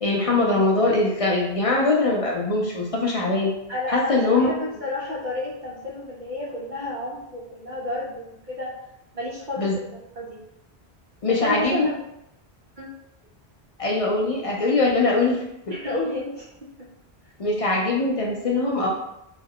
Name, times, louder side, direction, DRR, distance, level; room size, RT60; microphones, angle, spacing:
voice 1, 0.0-3.5 3.9-4.5 9.6-9.7 11.2-11.9 13.8-15.4 17.4-18.9, left 3 dB, 60° left, -2 dB, 0.3 m, -22 dB
voice 2, 3.7-4.5 4.8-8.7 9.1-9.7 10.0-10.4 11.3-12.0 12.8-12.9 15.7-16.9, left 1 dB, 55° right, -4 dB, 0.6 m, -30 dB
2.3 x 2.2 x 3.4 m, 0.83 s
omnidirectional pair, 1.1 m